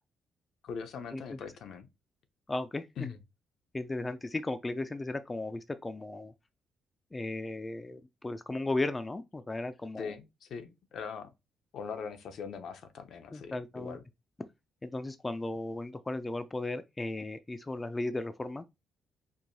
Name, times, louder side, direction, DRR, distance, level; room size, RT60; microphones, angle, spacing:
voice 1, 0.6-1.9 3.0-3.2 10.0-11.3 11.7-14.0, left 6 dB, 70° left, 0.7 m, -41 dB
voice 2, 2.5-2.9 3.7-6.3 7.1-10.1 13.3-14.0 14.8-18.6, left 2 dB, 20° left, 0.4 m, -35 dB
4.6 x 2.7 x 2.6 m
cardioid pair, 90°, 0 cm